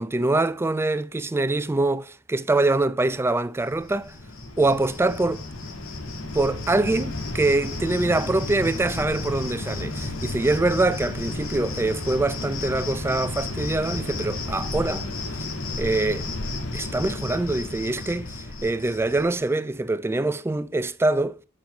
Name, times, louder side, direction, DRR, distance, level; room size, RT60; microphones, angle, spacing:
voice 1, 0.0-4.1 4.6-5.4 6.3-15.1 15.8-16.3 16.7-21.4, right 2 dB, 10° right, 0.3 m, -24 dB
Cricket, 3.7-19.4, left 2 dB, 75° left, 1.4 m, -32 dB
7.4 x 6.9 x 3.1 m
head